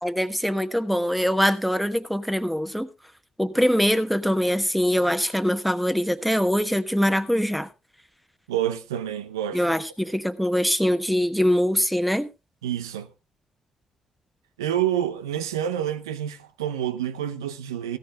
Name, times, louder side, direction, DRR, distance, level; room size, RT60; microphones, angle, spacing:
voice 1, 0.0-2.9 3.4-7.7 9.5-12.3, equal, ahead, 1.2 m, -23 dB
voice 2, 8.5-9.6 12.6-13.1 14.6-18.0, right 10 dB, 85° right, 0.7 m, -28 dB
16.5 x 13.5 x 2.3 m
hypercardioid pair, 40°, 2 cm